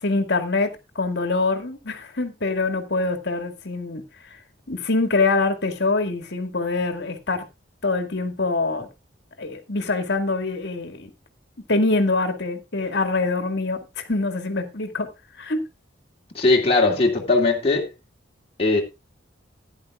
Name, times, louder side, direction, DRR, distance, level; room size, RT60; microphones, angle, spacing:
voice 1, 0.0-4.4 4.7-7.4 7.8-8.9 9.4-11.1 11.7-15.1 15.4-15.6, left 3 dB, 60° left, 2.1 m, -24 dB
voice 2, 16.3-17.9 18.6-18.8, left 3 dB, 30° left, 2.7 m, -19 dB
14.5 x 10.5 x 2.5 m
head